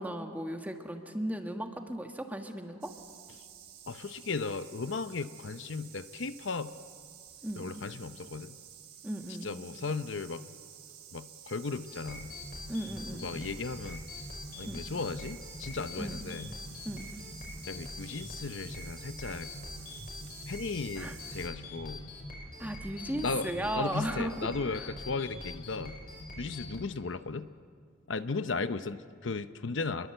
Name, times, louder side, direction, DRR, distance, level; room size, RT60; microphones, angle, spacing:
voice 1, 0.0-2.9 7.4-7.7 9.0-9.5 12.7-13.3 14.7-14.9 16.0-16.3 16.9-17.1 21.0-21.2 22.6-24.3, right 1 dB, 10° right, 4 dB, 1.6 m, -36 dB
sound 1, 2.8-21.5, right 9 dB, 50° right, 2.8 m, -51 dB
voice 2, 3.9-6.7 7.5-8.6 9.4-10.4 11.1-12.3 13.2-14.1 14.6-16.5 17.6-19.5 20.5-22.0 23.2-23.5 23.7-26.0 26.4-27.5 28.1-30.1, left 4 dB, 65° left, 12 dB, 0.7 m, -36 dB
sound 2, 11.9-26.8, left 1 dB, 45° left, 5.6 m, -44 dB
28.0 x 22.0 x 7.9 m, 2.2 s
head